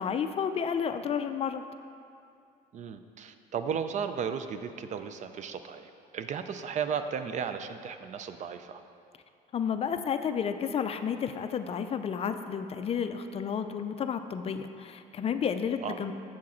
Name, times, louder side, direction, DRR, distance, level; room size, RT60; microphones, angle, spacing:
voice 1, 0.0-1.6 9.5-16.1, left 7 dB, 35° left, 9 dB, 0.4 m, -31 dB
voice 2, 2.7-8.8 15.8-16.0, right 7 dB, 45° right, 9 dB, 0.4 m, -35 dB
7.4 x 6.2 x 4.3 m, 2.4 s
cardioid pair, 110°, 17 cm